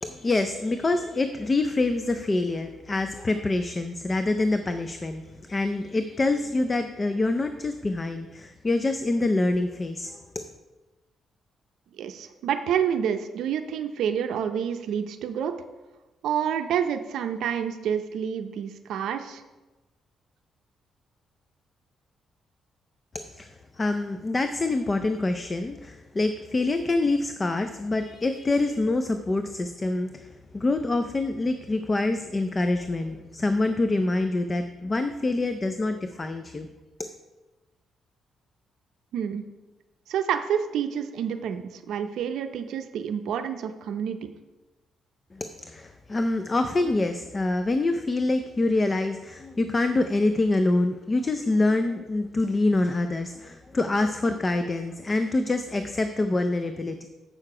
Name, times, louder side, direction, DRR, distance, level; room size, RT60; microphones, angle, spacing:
voice 1, 0.0-10.4 23.1-36.7 37.0-37.1 45.3-57.0, left 2 dB, 20° left, 8 dB, 0.4 m, -26 dB
voice 2, 12.0-15.5 16.2-19.4 39.1-39.4 40.1-44.2, right 8 dB, 80° right, 8 dB, 0.5 m, -28 dB
7.5 x 6.6 x 4.8 m, 1.1 s
cardioid pair, 145°, 0 cm